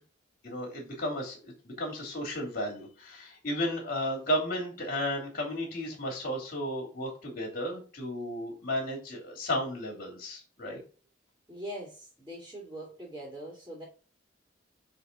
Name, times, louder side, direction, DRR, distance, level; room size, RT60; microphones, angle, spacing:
voice 1, 0.4-10.8, equal, 50° left, -1 dB, 3.0 m, -34 dB
voice 2, 11.5-13.8, right 1 dB, 10° right, -5 dB, 2.4 m, -42 dB
7.5 x 3.5 x 4.1 m, 0.36 s
head